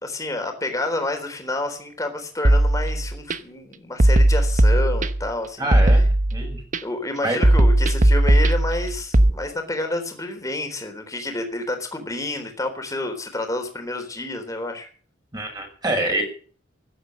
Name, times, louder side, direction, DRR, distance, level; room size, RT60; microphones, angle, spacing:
voice 1, 0.0-6.0 6.8-14.9, left 2 dB, 15° left, 5 dB, 3.7 m, -29 dB
sound 1, 2.4-3.4 4.0-5.3 5.7-6.8 7.4-9.3, right 1 dB, 40° right, 1.0 m, -17 dB
voice 2, 5.6-6.0 6.3-6.6 7.2-7.4 15.3-16.2, right 1 dB, 20° right, 3 dB, 5.8 m, -25 dB
15.5 x 11.0 x 6.4 m, 0.42 s
head